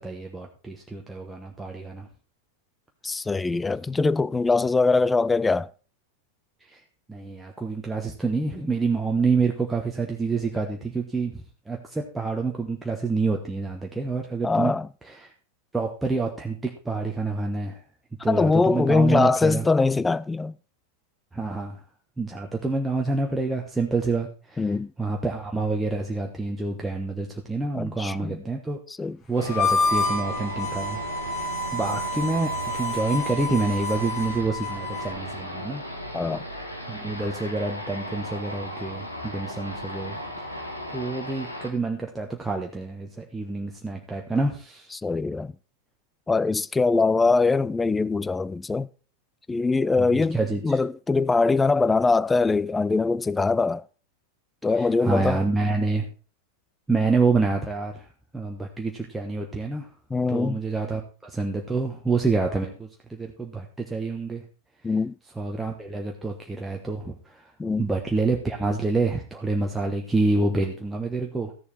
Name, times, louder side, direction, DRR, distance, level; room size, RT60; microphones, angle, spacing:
voice 1, 0.0-2.1 6.7-6.8 7.1-11.3 11.7-14.7 15.0-15.3 15.7-17.8 18.2-19.6 21.3-21.8 22.2-24.6 25.0-28.8 29.3-31.0 31.3-35.8 36.9-40.2 40.4-40.6 40.9-44.9 50.0-50.6 54.8-56.0 56.9-58.1 58.3-59.9 60.3-64.4 65.4-67.4 67.8-71.5, right 3 dB, 5° right, 1.1 m, -27 dB
voice 2, 3.0-5.7 14.4-14.9 18.3-20.6 24.6-24.9 27.7-28.4 29.0-29.2 36.1-36.4 44.9-45.5 46.3-48.9 49.5-50.4 50.6-53.8 54.6-55.4 60.1-60.6 64.8-65.1 67.6-67.8, left 3 dB, 10° left, 0.4 m, -22 dB
sound 1, 29.4-41.7, equal, 90° left, 1.7 m, -36 dB
Harmonica, 29.5-35.1, left 2 dB, 25° left, 1.9 m, -28 dB
14.0 x 7.0 x 4.2 m
figure-of-eight pair, 90°, 0 cm